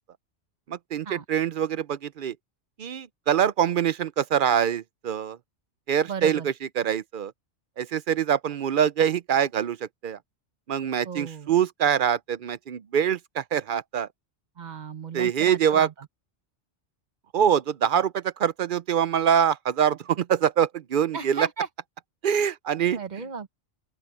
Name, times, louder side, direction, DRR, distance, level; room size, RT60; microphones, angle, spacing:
voice 1, 0.7-2.4 2.8-5.4 5.9-7.3 7.8-10.2 10.7-14.1 15.1-15.9 17.3-21.5 22.2-23.0, right 8 dB, 55° right, 0.6 m, -24 dB
voice 2, 6.1-6.5 11.0-11.5 14.6-15.9 21.1-21.7 22.9-23.5, right 6 dB, 40° right, 1.1 m, -34 dB
open air
omnidirectional pair, 1.2 m